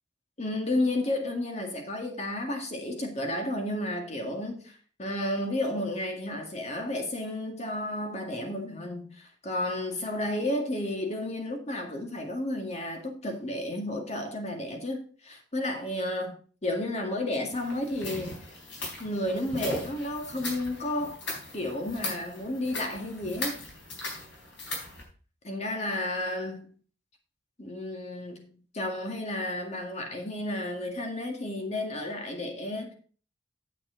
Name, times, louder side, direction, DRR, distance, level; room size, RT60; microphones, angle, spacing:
voice 1, 0.4-18.4 19.0-21.2 21.5-23.6 25.4-26.7 27.6-32.9, left 1 dB, 40° left, 2.0 m, -32 dB
sound 1, 17.5-25.0, left 2 dB, 80° left, 3.9 m, -38 dB
9.6 x 7.4 x 3.9 m
head